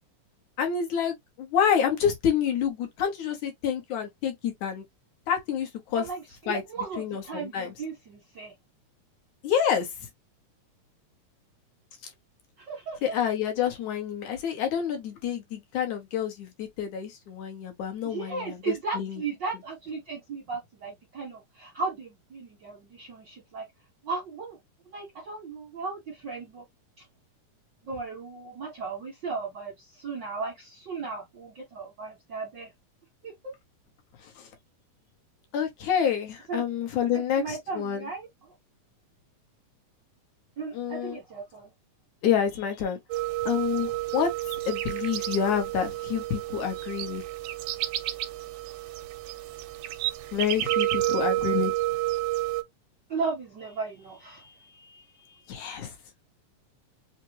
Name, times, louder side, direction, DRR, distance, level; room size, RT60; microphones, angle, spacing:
voice 1, 0.6-4.8 5.3-6.1 6.5-6.6 7.0-7.7 9.4-9.9 13.0-19.2 34.4-34.5 35.5-38.1 40.7-41.2 42.2-43.0 43.5-44.3 44.7-47.2 50.3-51.7 55.5-55.9, left 8 dB, 70° left, 2.4 m, -28 dB
voice 2, 5.9-8.5 12.6-13.0 18.0-23.6 24.0-24.6 24.8-26.6 27.0-27.1 27.9-32.7 33.2-33.5 36.5-36.6 37.4-38.3 40.6-41.7 53.1-55.8, right 4 dB, 60° right, 1.1 m, -36 dB
sound 1, 43.1-52.6, right 16 dB, 80° right, 2.1 m, -30 dB
5.7 x 2.2 x 3.0 m
omnidirectional pair, 3.7 m